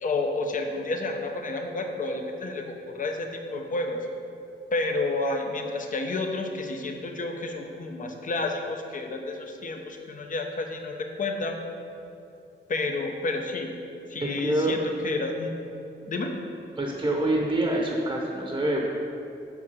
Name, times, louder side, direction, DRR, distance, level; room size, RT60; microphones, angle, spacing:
voice 1, 0.0-4.1 4.7-11.6 12.7-13.7 14.1-14.8 15.0-15.5 16.1-16.4, left 2 dB, 45° left, 4 dB, 0.8 m, -30 dB
voice 2, 14.2-14.7 16.8-18.9, right 1 dB, 20° right, -1 dB, 0.9 m, -26 dB
8.3 x 6.0 x 5.4 m, 2.7 s
wide cardioid pair, 160°, 19 cm